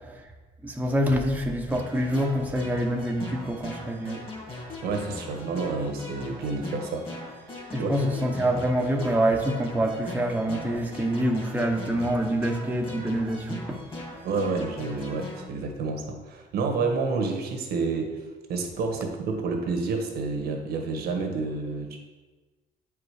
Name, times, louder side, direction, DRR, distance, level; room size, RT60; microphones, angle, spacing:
voice 1, 0.6-4.2 7.7-13.8, right 1 dB, 10° right, 1 dB, 0.9 m, -26 dB
sound 1, 1.7-15.4, left 2 dB, 30° left, 2.2 m, -40 dB
voice 2, 4.8-7.1 7.8-8.3 14.2-18.2 18.5-22.0, right 4 dB, 70° right, 3 dB, 1.4 m, -29 dB
8.3 x 4.9 x 4.9 m, 1.3 s
cardioid pair, 110°, 17 cm